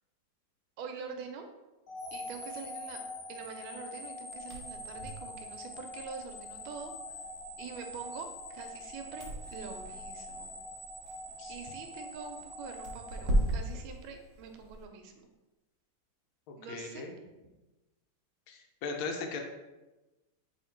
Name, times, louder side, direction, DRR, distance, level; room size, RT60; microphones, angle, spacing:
voice 1, 0.8-1.5 2.1-3.0 3.3-6.9 7.6-10.5 11.5-15.3 16.5-17.1, right 6 dB, 85° right, 5 dB, 1.4 m, -45 dB
sound 1, 1.9-14.0, left 1 dB, 45° left, 1.3 m, -44 dB
sound 2, 4.3-14.8, right 1 dB, 70° right, 0.7 m, -38 dB
voice 2, 16.5-17.1 18.5-19.4, left 4 dB, 80° left, 3 dB, 1.4 m, -38 dB
3.1 x 2.8 x 4.3 m, 1.1 s
omnidirectional pair, 2.2 m